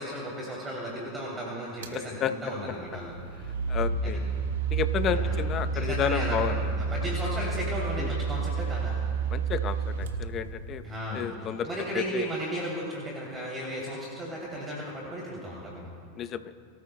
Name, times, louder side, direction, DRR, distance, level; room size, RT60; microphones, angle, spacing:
voice 1, 0.0-3.1 4.0-4.1 5.1-5.4 5.7-9.0 10.8-15.9, equal, 20° right, -4 dB, 2.9 m, -35 dB
sound 1, 1.8-2.0 2.9-10.9, right 4 dB, 75° right, 1.3 m, -30 dB
voice 2, 1.9-2.3 3.7-4.2 4.7-6.6 8.0-8.1 9.3-10.8 11.1-11.7 11.9-12.3 16.2-16.5, left 9 dB, 35° left, 10 dB, 0.7 m, -31 dB
22.5 x 13.5 x 2.2 m, 2.2 s
hypercardioid pair, 100°, 0 cm